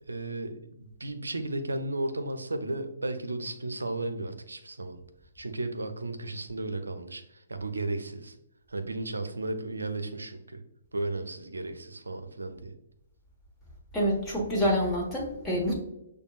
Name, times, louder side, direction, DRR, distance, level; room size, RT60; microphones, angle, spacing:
voice 1, 0.0-5.0 5.4-8.3 8.7-10.6 10.9-12.7, right 2 dB, 80° right, 8 dB, 0.5 m, -34 dB
voice 2, 13.9-15.8, equal, 15° left, -3 dB, 1.3 m, -27 dB
6.7 x 2.3 x 2.3 m, 0.88 s
figure-of-eight pair, 130°, 0 cm